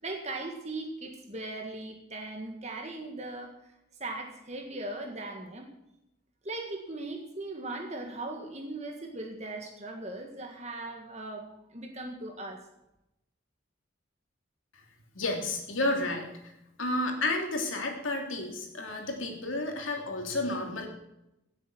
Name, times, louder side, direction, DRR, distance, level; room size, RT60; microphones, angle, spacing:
voice 1, 0.0-3.5 4.0-5.7 6.4-12.6, right 2 dB, 35° right, 3 dB, 1.7 m, -39 dB
voice 2, 15.1-16.5 16.8-20.9, left 2 dB, 85° left, 2 dB, 3.0 m, -31 dB
17.0 x 7.9 x 6.1 m, 0.88 s
head